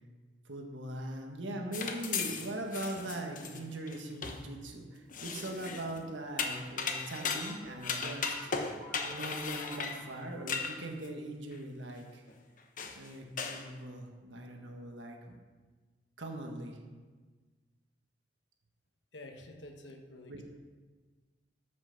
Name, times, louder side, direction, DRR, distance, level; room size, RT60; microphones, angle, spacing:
voice 1, 0.4-8.3 9.1-12.2 12.9-15.2 16.2-16.8 20.3-20.4, right 1 dB, 85° right, 2 dB, 1.5 m, -41 dB
sound 1, 1.7-4.5 5.1-6.0 6.4-11.1 11.5-11.6 12.3-12.4 12.8-13.1 13.4-13.7, left 5 dB, 45° left, 1.0 m, -37 dB
sound 2, 6.6-10.8, right 1 dB, 10° left, 3.8 m, -52 dB
voice 2, 19.1-20.4, left 1 dB, 70° left, 4 dB, 1.3 m, -49 dB
13.0 x 6.0 x 5.8 m, 1.4 s
head